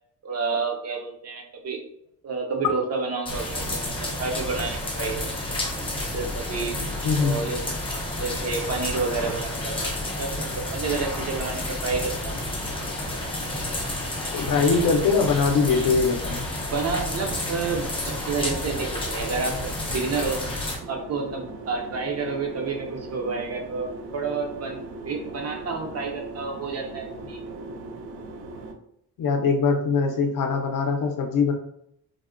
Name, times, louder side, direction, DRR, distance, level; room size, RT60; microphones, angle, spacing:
voice 1, 0.2-1.8 2.2-5.6 6.0-6.8 7.2-9.9 10.2-12.4 16.6-20.4 20.9-27.4, right 4 dB, 40° right, 3 dB, 0.5 m, -30 dB
sound 1, 3.3-20.8, left 1 dB, 15° left, 0.6 m, -30 dB
voice 2, 7.0-7.4 14.3-16.5 29.2-31.5, left 5 dB, 55° left, 4 dB, 0.5 m, -22 dB
sound 2, 20.8-28.7, right 2 dB, 90° right, 0.6 m, -39 dB
3.4 x 2.1 x 2.4 m, 0.73 s
cardioid pair, 140°, 39 cm